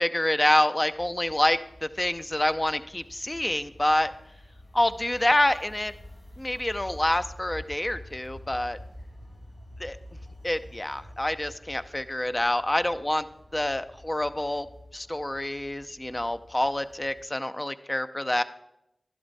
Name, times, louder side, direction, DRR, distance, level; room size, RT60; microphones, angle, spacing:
voice 1, 0.0-4.1 4.7-5.9 6.4-8.8 9.8-10.0 10.4-13.3 13.5-14.7 14.9-18.4, left 1 dB, 25° left, 11 dB, 0.6 m, -27 dB
sound 1, 0.9-17.2, left 1 dB, 65° left, 4.1 m, -48 dB
11.5 x 11.5 x 4.1 m, 0.83 s
cardioid pair, 45°, 0 cm